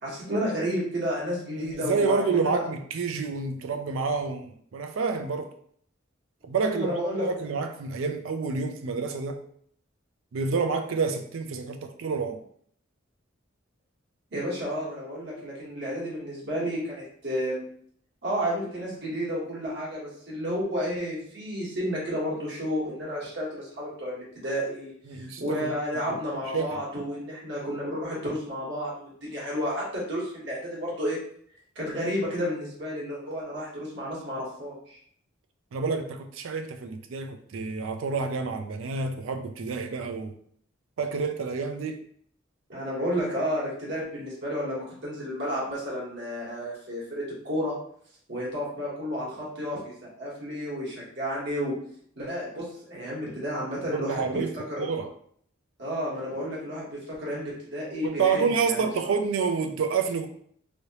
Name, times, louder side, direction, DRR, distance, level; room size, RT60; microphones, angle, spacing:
voice 1, 0.0-2.6 6.6-7.3 14.3-17.6 18.2-31.2 31.7-35.0 42.7-47.7 48.3-51.7 52.1-54.4 54.7-54.9 55.8-58.9, equal, 60° right, 1.4 m, -31 dB
voice 2, 1.5-5.5 6.4-9.4 10.3-12.4 25.1-25.7 26.5-26.8 35.7-40.3 41.0-42.0 53.9-55.1 58.0-60.3, right 5 dB, 80° right, 0.4 m, -28 dB
3.2 x 2.8 x 2.9 m
head